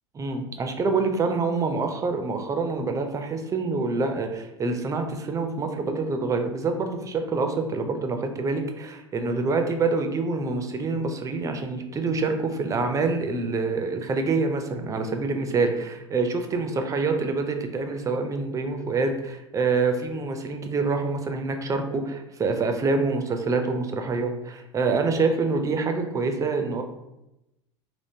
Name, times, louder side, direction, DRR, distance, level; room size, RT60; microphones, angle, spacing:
voice 1, 0.2-26.8, right 3 dB, 20° right, 5 dB, 0.5 m, -26 dB
3.5 x 2.4 x 2.7 m, 0.91 s
hypercardioid pair, 90°, 15 cm